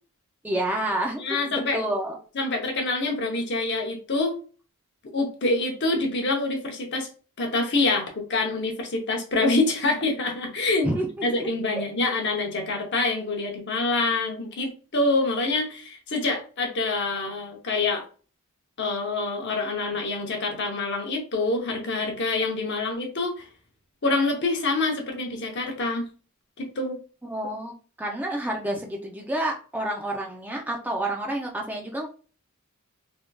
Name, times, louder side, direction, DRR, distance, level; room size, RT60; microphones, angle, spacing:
voice 1, 0.4-2.2 10.8-11.5 11.8-11.9 27.3-32.1, right 1 dB, 10° right, 0 dB, 0.4 m, -29 dB
voice 2, 1.2-1.8 2.3-4.3 5.1-7.1 7.4-10.9 11.2-18.0 18.8-23.5 24.0-26.1 26.6-27.0, left 2 dB, 50° left, 2 dB, 0.8 m, -26 dB
3.4 x 2.6 x 2.3 m, 0.37 s
head